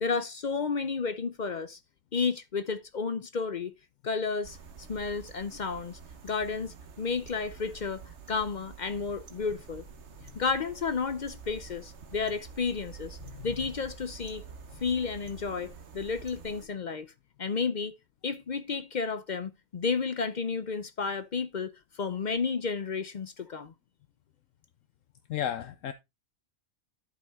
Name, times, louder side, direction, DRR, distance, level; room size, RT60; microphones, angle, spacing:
voice 1, 0.0-1.8 2.1-3.7 4.0-9.8 10.3-13.2 13.4-14.4 14.8-17.1 17.4-18.0 18.2-23.7, left 5 dB, 50° left, 0.6 m, -32 dB
sound 1, 4.4-16.7, right 6 dB, 60° right, 1.4 m, -48 dB
voice 2, 25.3-25.9, left 10 dB, 75° left, 1.0 m, -33 dB
11.5 x 5.3 x 3.5 m
omnidirectional pair, 1.4 m